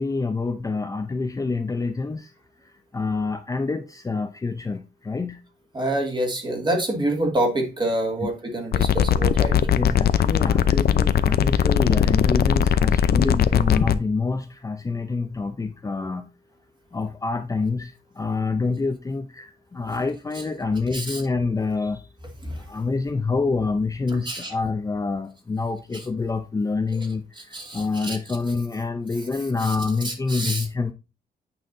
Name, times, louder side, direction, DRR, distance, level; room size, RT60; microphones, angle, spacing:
voice 1, 0.0-2.3 2.9-5.4 8.2-8.3 9.7-16.3 16.9-22.1 22.7-30.9, left 4 dB, 20° left, 0.5 m, -27 dB
voice 2, 5.7-9.6 20.9-21.2 22.4-22.6 24.3-24.5 25.9-26.0 27.5-28.2 29.6-29.8 30.0-30.7, right 1 dB, 25° right, 2.3 m, -27 dB
sound 1, 8.7-13.9, left 8 dB, 70° left, 0.6 m, -19 dB
8.9 x 5.7 x 2.6 m
wide cardioid pair, 160°, 17 cm